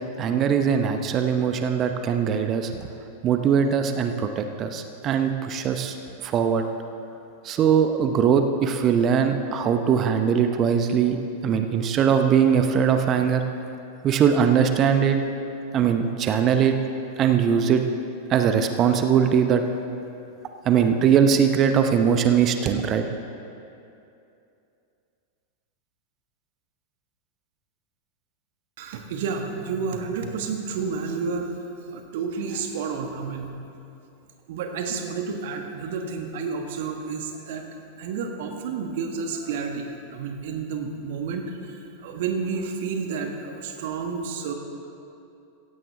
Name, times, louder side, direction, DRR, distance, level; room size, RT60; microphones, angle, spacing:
voice 1, 0.2-2.7 3.2-6.0 6.2-6.6 7.4-13.4 14.0-15.2 15.7-16.8 17.2-17.8 18.3-19.6 20.6-23.0, right 7 dB, 30° right, 7 dB, 0.9 m, -21 dB
voice 2, 28.8-31.5 31.9-33.5 34.5-37.7 38.0-41.8 42.0-44.5, right 5 dB, 55° right, 4 dB, 1.5 m, -30 dB
16.0 x 16.0 x 3.5 m, 2.7 s
figure-of-eight pair, 90°, 0 cm